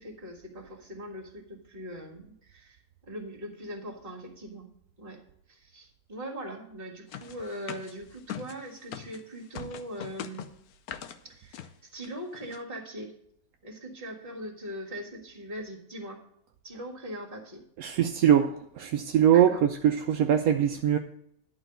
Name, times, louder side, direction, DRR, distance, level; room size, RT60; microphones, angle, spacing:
voice 1, 0.0-4.7 5.0-5.2 5.5-10.5 11.2-13.1 13.6-16.2 16.6-17.6 19.3-19.6, equal, 40° right, 1 dB, 2.0 m, -41 dB
sound 1, 7.1-9.2 9.5-11.2 11.5-11.7 12.0-12.1 12.3-12.6, left 10 dB, 85° left, 1.1 m, -41 dB
voice 2, 17.8-18.5 18.8-21.0, right 9 dB, 75° right, 5 dB, 1.0 m, -22 dB
11.5 x 4.0 x 7.8 m, 0.73 s
omnidirectional pair, 1.5 m